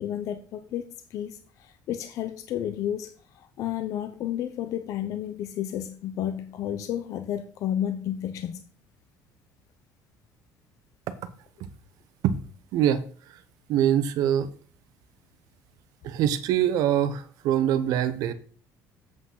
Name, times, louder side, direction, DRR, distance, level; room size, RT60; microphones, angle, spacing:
voice 1, 0.0-8.6, left 10 dB, 55° left, 9 dB, 0.7 m, -32 dB
voice 2, 12.7-13.0 13.7-14.5 16.0-18.3, right 10 dB, 65° right, 12 dB, 0.9 m, -23 dB
8.0 x 6.0 x 5.7 m, 0.43 s
cardioid pair, 165°, 7 cm